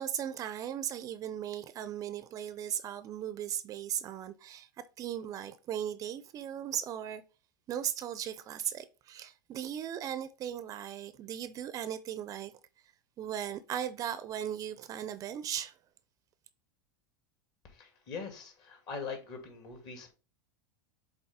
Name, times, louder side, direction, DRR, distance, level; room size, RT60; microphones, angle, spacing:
voice 1, 0.0-4.7 5.0-7.2 7.7-12.5 13.2-15.7, right 10 dB, 35° right, 0.5 m, -37 dB
voice 2, 17.6-20.1, left 5 dB, 45° left, 2.6 m, -42 dB
7.0 x 4.0 x 3.6 m
hypercardioid pair, 115°, 10 cm